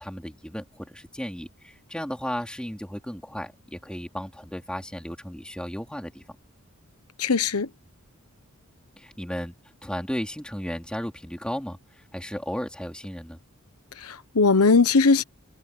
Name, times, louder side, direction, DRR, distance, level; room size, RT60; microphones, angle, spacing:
voice 1, 0.0-6.2 9.0-9.5 9.8-13.4, equal, 5° left, 3.7 m, -34 dB
voice 2, 7.2-7.7 14.0-15.2, left 4 dB, 90° left, 1.1 m, -20 dB
head